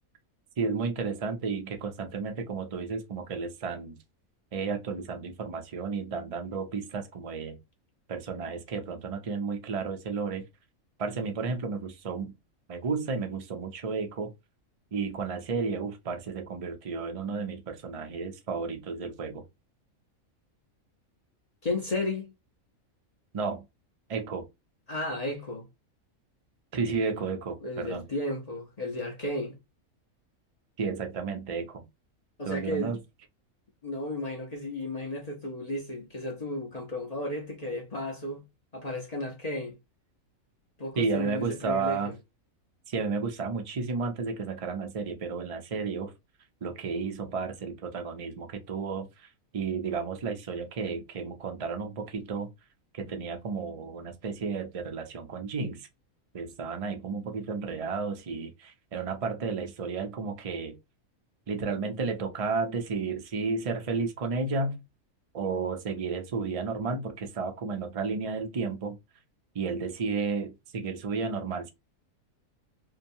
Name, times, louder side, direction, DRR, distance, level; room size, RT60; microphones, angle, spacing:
voice 1, 0.6-4.0 4.5-7.6 8.1-10.4 11.0-12.4 12.7-14.3 14.9-19.4 23.3-23.6 24.1-24.5 26.7-28.0 30.8-31.9 32.5-33.0 41.0-42.1 42.9-46.1 46.6-49.3 49.5-52.5 52.9-55.9 56.3-60.8 61.5-64.8 65.3-69.0 69.5-71.7, right 4 dB, 50° right, 0.4 m, -32 dB
voice 2, 21.6-22.3 24.9-25.7 27.6-29.6 32.4-32.9 33.8-38.4 38.7-39.8 40.8-42.2, left 1 dB, 40° left, 0.6 m, -33 dB
2.8 x 2.3 x 2.6 m
omnidirectional pair, 1.5 m